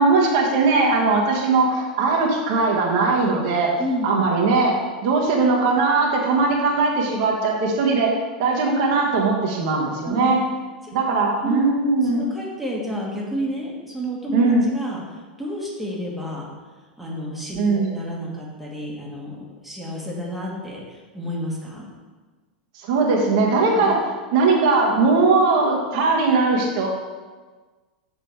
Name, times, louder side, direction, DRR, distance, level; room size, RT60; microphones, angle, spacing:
voice 1, 0.0-3.8 4.0-8.1 8.4-10.4 10.9-12.3 14.3-14.6 17.6-17.9 22.7-24.0 24.3-26.9, right 3 dB, 45° right, -2 dB, 1.4 m, -19 dB
voice 2, 12.1-16.5 17.0-21.8 23.7-23.8, equal, ahead, -5 dB, 1.7 m, -30 dB
6.6 x 5.8 x 4.8 m, 1.4 s
figure-of-eight pair, 90°, 5 cm